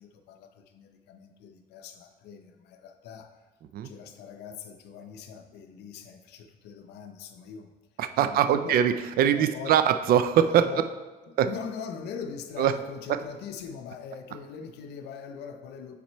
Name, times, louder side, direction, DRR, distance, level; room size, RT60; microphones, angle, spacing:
voice 1, 0.0-3.5 3.8-7.7 8.2-8.8 9.3-9.8 10.6-10.9 11.3-15.9, left 6 dB, 80° left, 7 dB, 0.6 m, -41 dB
voice 2, 8.0-10.6 11.4-11.5 12.6-12.7, right 9 dB, 60° right, 10 dB, 0.4 m, -22 dB
5.9 x 4.2 x 4.4 m, 1.2 s
cardioid pair, 110°, 17 cm